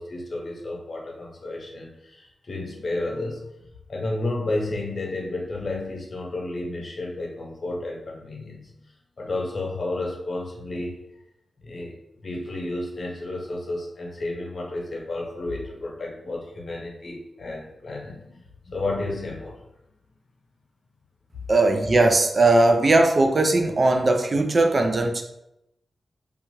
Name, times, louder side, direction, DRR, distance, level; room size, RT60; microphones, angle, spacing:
voice 1, 0.0-3.4 3.9-8.7 9.2-10.9 11.6-18.4 18.6-19.6, left 2 dB, 50° left, -1 dB, 0.7 m, -31 dB
voice 2, 21.5-25.2, right 2 dB, 45° right, 4 dB, 0.3 m, -19 dB
2.9 x 2.3 x 2.7 m, 0.84 s
wide cardioid pair, 100°, 0 cm